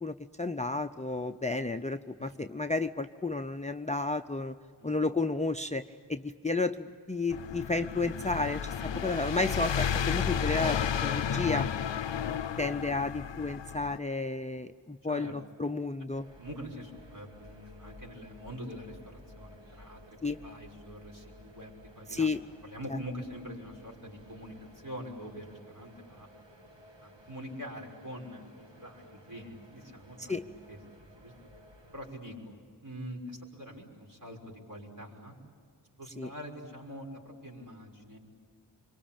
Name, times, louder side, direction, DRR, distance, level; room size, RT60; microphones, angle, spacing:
voice 1, 0.0-4.6 4.8-5.8 6.1-11.7 12.2-16.3 20.2-20.4 22.1-22.4 30.2-30.4 36.2-36.3, left 3 dB, 15° left, 9 dB, 0.6 m, -32 dB
sound 1, 7.3-14.0, left 8 dB, 80° left, 0.6 m, -32 dB
sound 2, 16.1-32.1, left 1 dB, 85° right, 2.2 m, -55 dB
voice 2, 16.4-22.3 22.6-24.5 24.8-26.3 27.0-31.3 31.9-32.6 32.8-35.3 36.0-38.2, equal, 45° right, -1 dB, 5.9 m, -44 dB
26.5 x 24.0 x 8.9 m, 2.1 s
wide cardioid pair, 50°, 43 cm